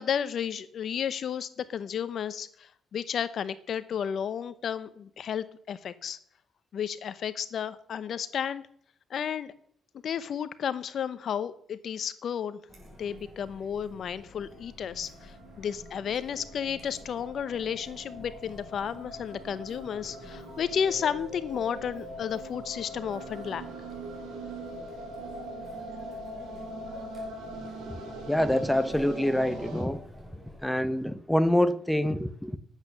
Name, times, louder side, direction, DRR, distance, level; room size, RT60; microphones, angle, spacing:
voice 1, 0.0-6.2 6.7-8.6 9.1-9.5 10.0-12.6 13.0-23.7, left 8 dB, 60° left, 0.8 m, -32 dB
Chatter, 12.7-30.6, left 1 dB, 25° right, 6.0 m, -51 dB
sound 1, 14.3-29.8, right 1 dB, 75° right, 5.3 m, -42 dB
voice 2, 28.3-30.0 30.6-32.6, left 1 dB, 5° left, 0.8 m, -26 dB
10.5 x 8.2 x 6.6 m
cardioid pair, 90°, 0 cm